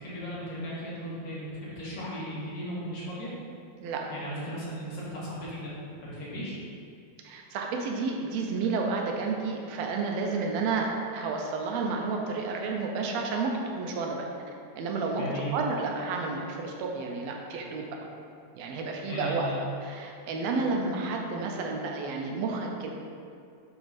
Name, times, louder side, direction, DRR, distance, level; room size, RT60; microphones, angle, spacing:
voice 1, 0.0-3.3 4.1-5.7 6.0-6.6 15.1-15.5 19.0-19.6, equal, 60° left, -8 dB, 2.4 m, -36 dB
voice 2, 7.2-13.5 13.8-14.3 14.7-15.2 15.5-17.9 18.5-19.5 19.8-22.9, right 4 dB, 75° right, 1 dB, 1.7 m, -31 dB
7.8 x 3.5 x 4.1 m, 2.5 s
omnidirectional pair, 3.6 m